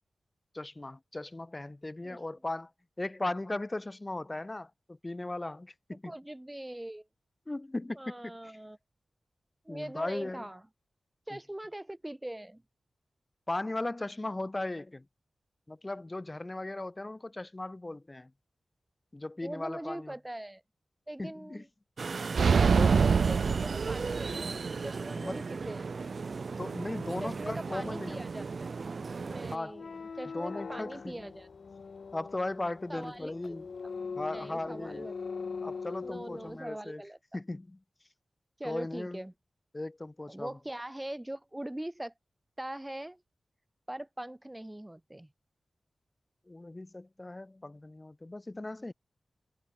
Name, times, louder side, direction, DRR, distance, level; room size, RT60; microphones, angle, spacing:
voice 1, 0.5-2.7 3.0-6.1 7.5-8.3 9.7-10.4 11.3-11.4 13.5-15.0 15.7-18.3 19.1-20.1 21.2-21.6 22.7-22.9 25.1-25.4 26.6-28.2 29.5-29.7 30.3-31.2 32.1-33.7 34.2-35.1 35.6-37.0 37.3-37.8 38.6-39.2 39.7-40.6 46.5-48.9, left 2 dB, 20° left, 2.7 m, -37 dB
voice 2, 6.0-7.1 7.9-8.8 9.6-10.6 11.3-12.6 19.4-20.6 21.1-21.7 22.4-25.9 27.2-28.7 29.2-31.5 32.9-33.6 34.3-35.1 36.0-37.2 38.6-39.3 40.3-42.1 42.6-43.2 43.9-45.3, right 1 dB, 10° right, 6.3 m, -42 dB
sound 1, 22.0-29.6, right 4 dB, 55° right, 1.2 m, -37 dB
sound 2, 22.3-24.5, right 5 dB, 85° right, 0.5 m, -24 dB
sound 3, 29.7-36.6, left 5 dB, 65° left, 0.5 m, -42 dB
wide cardioid pair, 130°, 0 cm